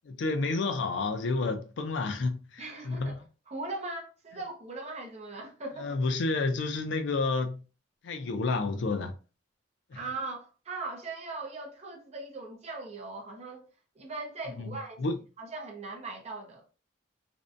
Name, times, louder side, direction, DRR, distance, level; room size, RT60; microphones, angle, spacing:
voice 1, 0.1-3.1 5.8-7.6 8.0-9.1 9.9-10.0 15.0-15.2, left 3 dB, 65° left, 0.4 m, -30 dB
voice 2, 2.6-6.0 9.9-13.7 14.0-15.0 15.4-16.7, right 3 dB, 35° right, 0.6 m, -39 dB
2.6 x 2.1 x 2.5 m
head